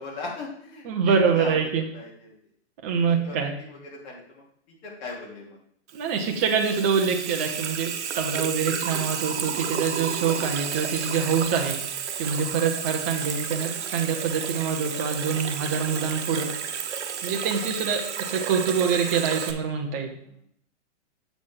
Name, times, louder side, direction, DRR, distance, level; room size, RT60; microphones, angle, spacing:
voice 1, 0.0-2.3 2.9-4.4 4.8-5.6 6.3-6.4 8.8-9.0 12.5-12.6 18.0-18.4 20.2-20.4, left 3 dB, 40° left, -4 dB, 2.9 m, -39 dB
voice 2, 0.9-1.9 2.8-3.5 5.9-11.8 12.2-16.5 17.2-20.1, right 6 dB, 15° right, 3 dB, 0.4 m, -25 dB
Water tap faucet / Sink (filling or washing), 5.9-19.5, right 8 dB, 75° right, 1.0 m, -32 dB
7.7 x 6.0 x 3.7 m, 0.67 s
hypercardioid pair, 155°, 35 cm